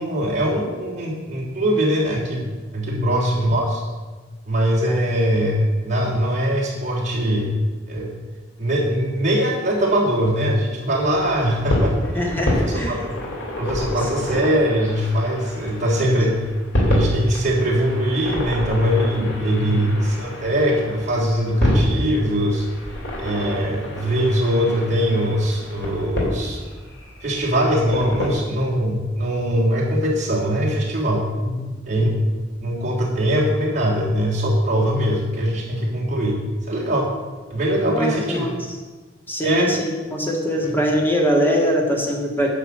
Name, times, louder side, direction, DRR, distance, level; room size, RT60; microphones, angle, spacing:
voice 1, 0.0-2.4 2.7-3.8 4.4-5.6 5.8-7.6 7.9-8.1 8.6-13.2 13.6-16.4 16.8-22.6 23.2-26.6 27.2-31.2 31.9-32.1 32.6-36.4 36.7-37.1 37.5-38.5 39.4-39.7 40.6-40.7, equal, 40° right, -4 dB, 3.2 m, -22 dB
voice 2, 2.9-3.2 4.9-5.0 12.1-13.0 16.0-16.2 19.7-19.8 31.4-31.8 37.8-38.6 39.3-42.5, equal, 10° left, 0 dB, 2.0 m, -23 dB
sound 1, 10.9-28.3, left 1 dB, 75° left, 3.0 m, -27 dB
9.9 x 5.9 x 7.8 m, 1.3 s
head